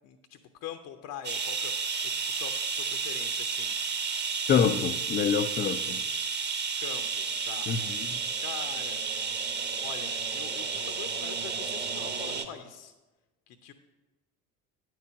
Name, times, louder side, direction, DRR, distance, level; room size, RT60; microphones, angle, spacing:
voice 1, 0.0-1.9 2.2-3.8 6.8-7.7 8.4-9.0 9.8-12.9 13.5-13.7, left 9 dB, 45° left, 0.7 m, -43 dB
sound 1, 1.2-12.5, right 5 dB, 20° right, 1.0 m, -32 dB
voice 2, 4.5-6.0 7.7-8.2, left 7 dB, 25° left, 0.4 m, -26 dB
9.4 x 4.7 x 7.1 m
figure-of-eight pair, 60°, 46 cm